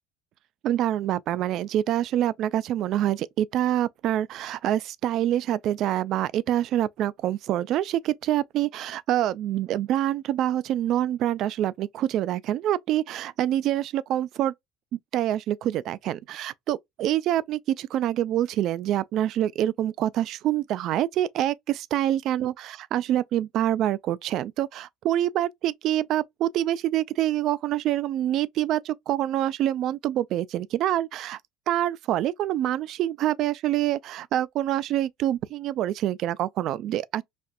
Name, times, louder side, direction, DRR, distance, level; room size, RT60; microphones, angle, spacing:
voice 1, 0.6-14.5 14.9-31.4 31.7-37.2, right 12 dB, 60° right, 0.3 m, -26 dB
4.2 x 2.5 x 2.3 m
hypercardioid pair, 75°, 0 cm